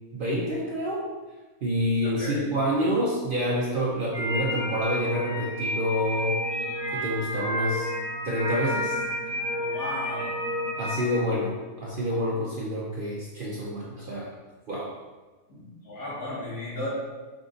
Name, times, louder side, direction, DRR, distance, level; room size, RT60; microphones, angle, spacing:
voice 1, 0.1-1.0 1.6-6.4 6.9-7.9 8.2-9.0 10.8-14.3 14.7-14.9, equal, 55° right, -5 dB, 0.6 m, -28 dB
voice 2, 2.0-2.4 9.6-10.3 15.5-16.9, left 1 dB, 80° left, -7 dB, 2.0 m, -35 dB
Lone Piper Outdoors, 4.1-11.1, equal, 20° left, 0.8 m, -30 dB
5.0 x 2.5 x 3.8 m, 1.3 s
omnidirectional pair, 1.5 m